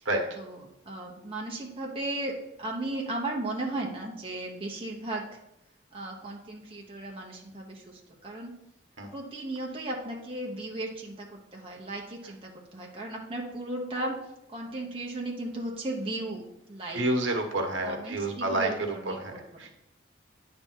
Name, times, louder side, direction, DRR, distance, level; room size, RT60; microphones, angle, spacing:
voice 1, 0.3-2.3 2.6-5.4 5.9-8.5 9.1-14.2 14.5-16.4 16.7-17.0 17.8-19.7, right 2 dB, 30° right, -1 dB, 0.9 m, -36 dB
voice 2, 16.9-18.7 19.0-19.7, right 2 dB, 85° right, 3 dB, 1.1 m, -29 dB
9.4 x 3.5 x 4.5 m, 0.84 s
head